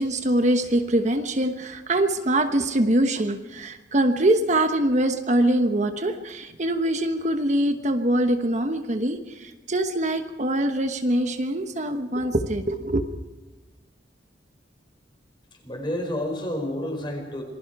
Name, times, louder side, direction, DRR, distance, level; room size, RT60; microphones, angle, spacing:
voice 1, 0.0-13.0, right 1 dB, 40° right, 7 dB, 1.1 m, -23 dB
voice 2, 15.6-17.4, left 1 dB, 25° left, 3 dB, 5.0 m, -29 dB
27.0 x 20.5 x 4.8 m, 1.2 s
head